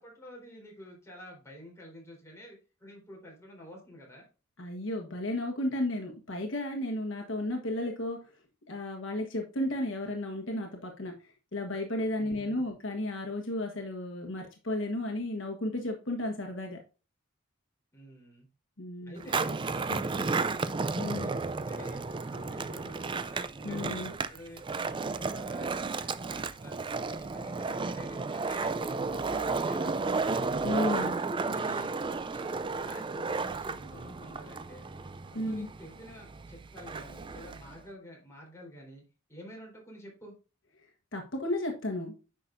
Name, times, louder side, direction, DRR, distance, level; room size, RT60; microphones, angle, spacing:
voice 1, 0.0-4.3 12.2-12.7 17.9-18.5 19.1-20.8 21.2-24.6 24.9-28.7 29.1-30.4 30.8-34.9 35.3-39.0 39.3-40.4, equal, 15° left, -2 dB, 3.8 m, -49 dB
voice 2, 4.6-8.2 8.7-11.1 11.5-16.8 18.8-19.2 19.9-20.1 21.0-21.3 23.6-24.1 30.6-31.1 35.3-35.7 41.1-42.1, left 1 dB, 65° left, 2 dB, 1.3 m, -33 dB
Skateboard, 19.2-37.8, right 4 dB, 25° right, 0.4 m, -33 dB
9.8 x 5.8 x 2.6 m, 0.33 s
head